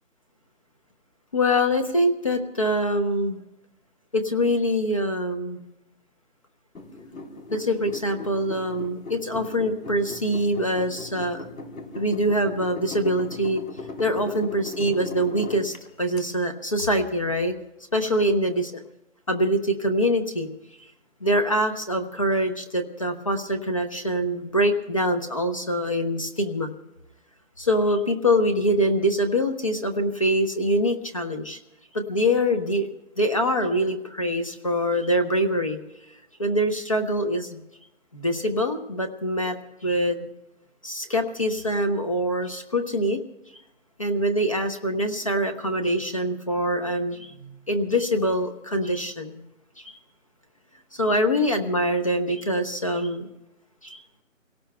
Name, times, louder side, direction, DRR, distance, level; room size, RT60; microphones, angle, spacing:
voice 1, 1.3-3.4 4.1-5.7 7.5-11.4 11.9-13.6 14.0-17.5 17.9-18.7 19.3-20.5 21.2-26.7 27.6-31.6 31.9-32.9 33.1-35.8 36.4-37.6 38.1-40.3 40.8-43.2 44.0-49.4 49.8-50.0 50.9-53.3 53.8-54.0, equal, 25° left, 7 dB, 0.9 m, -24 dB
sound 1, 6.7-16.2, left 2 dB, 85° left, 3.9 m, -39 dB
29.0 x 17.5 x 2.2 m, 0.96 s
figure-of-eight pair, 170°, 40 cm